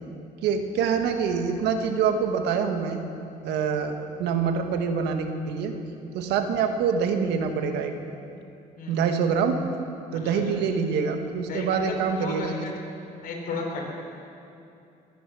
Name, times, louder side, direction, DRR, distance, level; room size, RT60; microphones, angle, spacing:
voice 1, 0.4-3.0 3.4-5.7 6.1-7.9 8.9-9.6 10.1-12.6, right 6 dB, 85° right, 6 dB, 1.5 m, -25 dB
voice 2, 11.5-12.7 13.2-13.9, left 3 dB, 60° left, -1 dB, 4.1 m, -34 dB
21.0 x 10.0 x 6.2 m, 2.7 s
cardioid pair, 110°, 17 cm